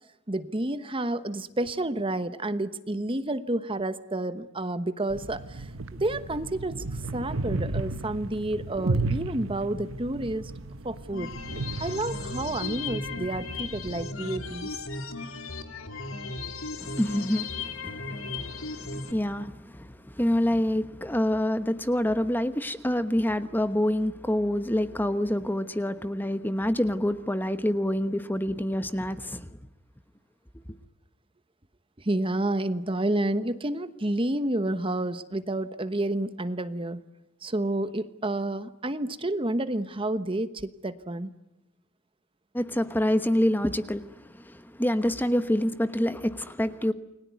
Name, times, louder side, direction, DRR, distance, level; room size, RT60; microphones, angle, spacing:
voice 1, 0.3-10.5 10.8-11.3 11.8-14.8 32.0-37.0 37.4-41.3, right 1 dB, 25° right, 1.1 m, -30 dB
sound 1, 5.1-14.0, right 2 dB, 80° right, 1.3 m, -34 dB
sound 2, 11.1-19.1, left 3 dB, 90° left, 3.1 m, -36 dB
voice 2, 16.8-29.5 42.5-46.9, left 1 dB, 10° left, 1.1 m, -27 dB
29.5 x 21.5 x 9.4 m
head